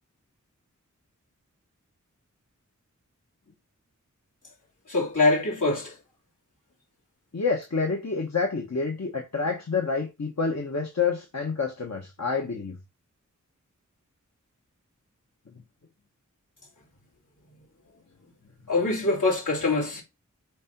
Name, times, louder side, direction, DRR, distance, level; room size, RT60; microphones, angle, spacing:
voice 1, 4.9-6.0 18.7-20.0, left 3 dB, 80° left, 3.1 m, -24 dB
voice 2, 7.3-12.8, left 4 dB, 60° left, 1.2 m, -28 dB
8.4 x 2.8 x 5.9 m
wide cardioid pair, 45°, 31 cm